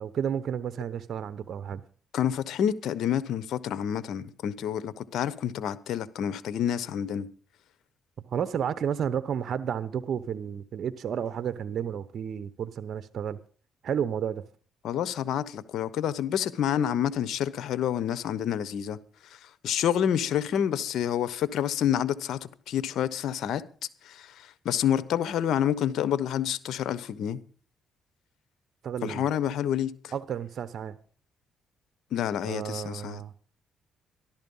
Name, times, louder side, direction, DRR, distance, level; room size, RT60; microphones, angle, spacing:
voice 1, 0.0-1.8 8.3-13.4 13.8-14.4 28.8-29.3 30.1-31.0 32.5-33.4, right 8 dB, 60° right, 0.9 m, -31 dB
voice 2, 2.1-7.3 14.8-19.0 19.3-22.4 22.7-23.6 24.0-27.4 29.0-30.1 32.1-33.2, left 9 dB, 75° left, 1.0 m, -28 dB
13.5 x 12.0 x 5.5 m
cardioid pair, 85°, 0 cm